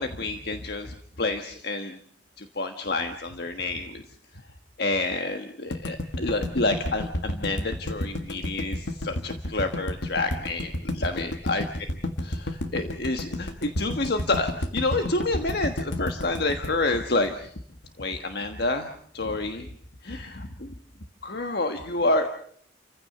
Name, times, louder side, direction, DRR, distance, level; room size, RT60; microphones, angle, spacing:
voice 1, 0.0-2.0 2.4-4.0 4.8-11.6 12.2-17.5 18.0-19.7 20.0-20.7 21.2-22.3, left 2 dB, 60° left, 6 dB, 1.4 m, -28 dB
sound 1, 5.7-17.9, left 1 dB, 85° left, 1.8 m, -31 dB
30.0 x 15.5 x 6.7 m, 0.63 s
head